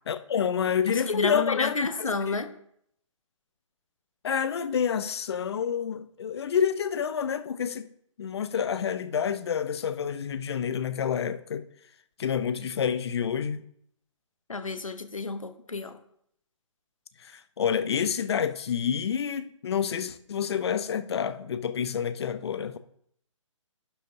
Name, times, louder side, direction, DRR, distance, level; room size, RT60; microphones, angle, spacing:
voice 1, 0.1-2.4 4.2-7.9 8.2-11.6 12.2-13.6 17.2-22.8, left 7 dB, 50° left, 0.6 m, -28 dB
voice 2, 0.9-2.5 14.5-16.0, left 3 dB, 80° left, 1.0 m, -30 dB
11.5 x 7.6 x 2.7 m
figure-of-eight pair, 135°, 17 cm